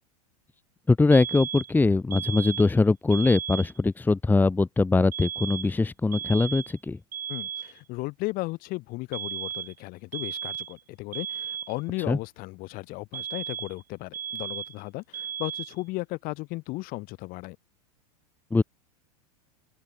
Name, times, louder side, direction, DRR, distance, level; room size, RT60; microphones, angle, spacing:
voice 1, 0.9-7.0 12.1-12.2 18.5-18.6, left 3 dB, 10° left, 1.4 m, -22 dB
sound 1, 1.1-1.8 2.1-2.8 3.1-3.8 5.1-5.8 6.1-6.8 7.1-7.8 9.1-9.8 10.1-10.8 11.1-11.8 13.1-13.8 14.1-14.8 15.1-15.8, right 8 dB, 85° right, 3.8 m, -35 dB
voice 2, 7.3-17.6, left 22 dB, 45° left, 2.7 m, -35 dB
hypercardioid pair, 100°, 20 cm